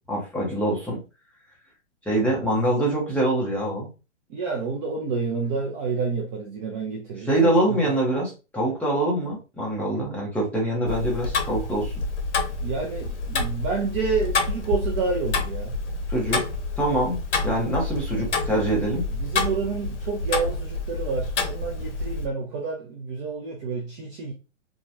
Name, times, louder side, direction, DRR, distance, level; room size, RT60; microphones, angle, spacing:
voice 1, 0.1-1.0 2.1-3.9 7.2-11.9 16.1-16.4 16.8-19.0, right 1 dB, 5° left, 0.8 m, -24 dB
voice 2, 4.3-7.9 12.6-15.8 19.1-24.3, right 5 dB, 25° right, 0.5 m, -29 dB
Tick-tock, 10.9-22.3, left 3 dB, 70° left, 0.8 m, -28 dB
2.9 x 2.3 x 2.6 m
hypercardioid pair, 125°, 36 cm